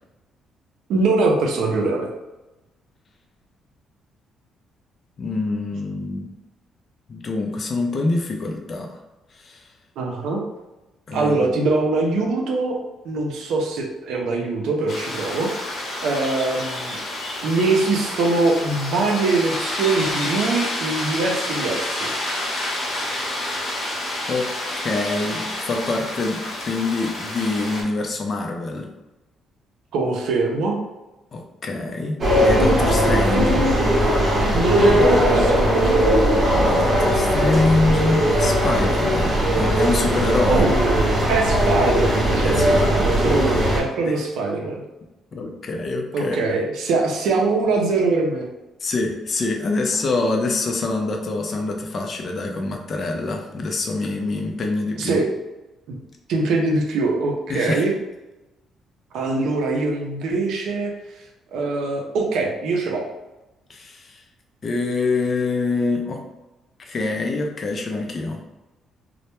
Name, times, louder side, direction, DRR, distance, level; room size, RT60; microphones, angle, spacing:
voice 1, 0.9-2.1 10.0-10.4 11.1-12.8 13.0-17.0 17.4-22.1 29.9-30.8 34.5-35.9 40.5-44.8 46.1-48.5 55.0-55.3 55.9-56.0 56.3-57.9 59.1-60.9 61.5-63.0, right 3 dB, 80° right, 1 dB, 0.4 m, -22 dB
voice 2, 5.2-6.3 7.1-8.9 9.3-9.7 11.1-11.5 24.3-24.5 24.8-28.9 31.3-33.6 36.5-40.7 42.4-43.1 44.0-44.1 45.3-46.4 48.8-55.2 57.5-57.8 63.7-64.2 64.6-66.2 66.9-68.4, left 3 dB, 45° left, 3 dB, 0.4 m, -25 dB
sound 1, 14.9-27.8, left 1 dB, 65° left, 0.8 m, -29 dB
sound 2, 32.2-43.8, equal, 45° right, 0.7 m, -18 dB
2.1 x 2.1 x 2.9 m, 1.0 s
cardioid pair, 95°, 0 cm